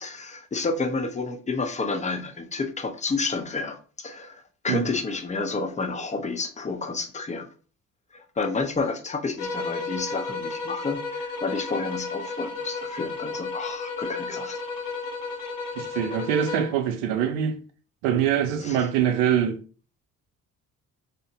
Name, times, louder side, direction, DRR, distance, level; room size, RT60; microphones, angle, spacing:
voice 1, 0.0-7.5 8.1-14.6 18.6-18.8, left 3 dB, 20° left, 0.5 m, -30 dB
sound 1, 9.4-16.8, left 4 dB, 65° left, 0.6 m, -33 dB
voice 2, 15.8-17.6 18.0-19.6, right 9 dB, 85° right, 0.5 m, -24 dB
2.6 x 2.1 x 2.7 m
hypercardioid pair, 55°, 37 cm